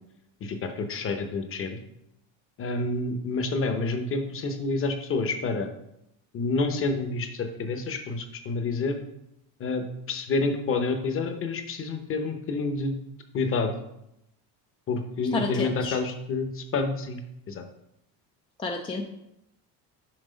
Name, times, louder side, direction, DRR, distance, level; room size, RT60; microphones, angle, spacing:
voice 1, 0.4-1.8 2.6-5.7 6.3-9.0 9.6-13.0 13.3-13.7 14.9-17.2 17.5-17.6, left 3 dB, 30° left, 6 dB, 0.9 m, -28 dB
voice 2, 15.3-16.0 18.6-19.0, left 3 dB, 15° left, 2 dB, 0.3 m, -30 dB
6.1 x 4.8 x 5.0 m, 0.82 s
cardioid pair, 150°, 40 cm